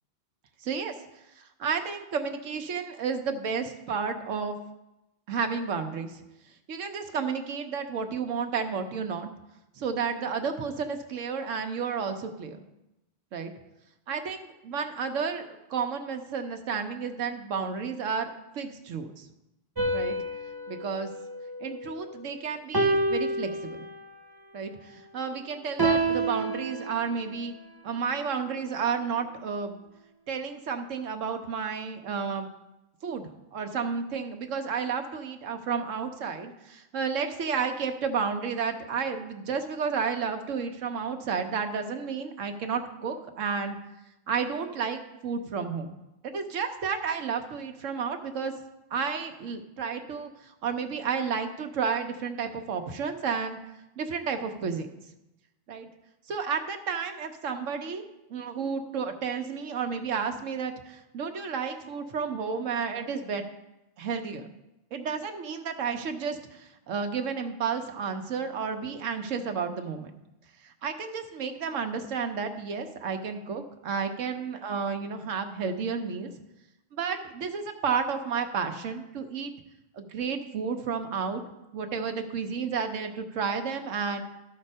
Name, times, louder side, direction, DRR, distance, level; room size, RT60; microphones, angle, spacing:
voice 1, 0.6-0.9 1.4-4.5 5.3-6.2 6.7-9.3 9.8-12.6 13.3-13.5 14.1-14.4 14.6-18.3 18.5-19.3 19.9-20.1 20.7-21.1 21.6-23.5 23.8-23.9 24.5-27.5 27.8-29.8 30.3-32.5 33.0-43.8 44.3-45.9 46.2-48.5 48.9-53.6 54.0-55.0 55.7-55.9 56.3-58.0 58.3-63.4 64.0-64.5 64.9-70.1 70.6-76.3 76.9-79.5 79.9-81.4 81.7-84.2, right 6 dB, 85° right, 6 dB, 1.2 m, -31 dB
sound 1, 19.8-22.2 22.7-24.2 25.8-27.5, right 2 dB, 25° right, 0.6 m, -29 dB
12.5 x 4.3 x 5.5 m, 0.94 s
omnidirectional pair, 1.3 m